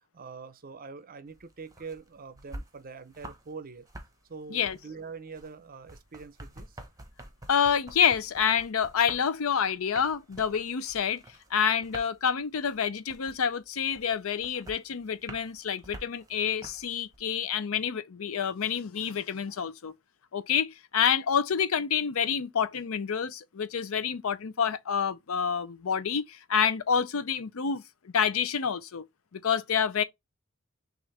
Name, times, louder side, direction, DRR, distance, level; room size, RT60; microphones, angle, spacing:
voice 1, 0.1-3.9 4.3-6.8, right 4 dB, 40° right, 0.6 m, -44 dB
sound 1, 1.3-3.5 3.8-17.2, right 1 dB, 15° right, 0.9 m, -48 dB
voice 2, 7.5-11.2 11.5-19.9 20.3-29.1 29.3-30.0, left 7 dB, 70° left, 0.5 m, -28 dB
6.2 x 2.5 x 3.2 m
head